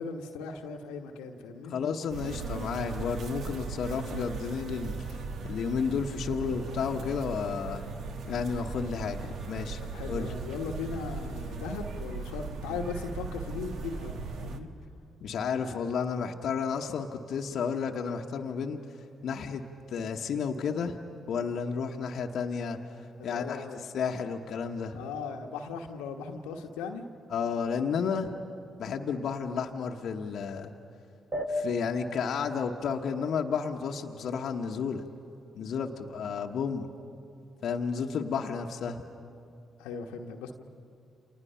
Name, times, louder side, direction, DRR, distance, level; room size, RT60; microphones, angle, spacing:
voice 1, 0.0-1.7 9.8-14.7 23.2-23.8 24.9-27.1 39.8-40.5, left 5 dB, 80° left, 3 dB, 1.2 m, -38 dB
voice 2, 1.7-7.8 8.3-9.8 10.1-10.3 15.2-18.8 19.2-19.6 19.9-21.0 21.3-22.8 23.2-23.6 23.9-25.0 27.3-28.3 28.8-30.7 31.5-35.0 35.6-36.9 37.6-39.0, left 6 dB, 65° left, 2 dB, 1.1 m, -32 dB
sound 1, 2.1-14.6, right 4 dB, 65° right, 1.4 m, -38 dB
sound 2, 31.3-34.3, left 1 dB, 35° right, 2.2 m, -37 dB
29.5 x 27.5 x 5.7 m, 2.6 s
hypercardioid pair, 45°, 0 cm